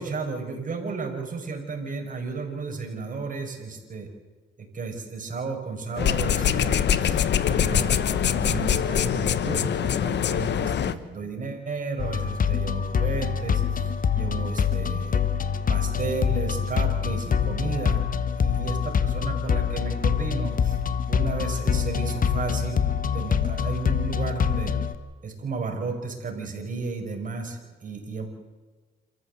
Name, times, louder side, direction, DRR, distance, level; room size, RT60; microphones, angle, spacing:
voice 1, 0.0-4.1 4.6-15.2 15.7-18.0 18.4-20.8 21.1-24.8 25.2-28.3, right 4 dB, 40° right, 3 dB, 5.7 m, -33 dB
sound 1, 6.0-10.9, left 9 dB, 60° left, 1.2 m, -23 dB
sound 2, 12.0-24.9, left 7 dB, 45° left, 1.4 m, -25 dB
27.5 x 14.5 x 8.1 m, 1.4 s
cardioid pair, 90°, 20 cm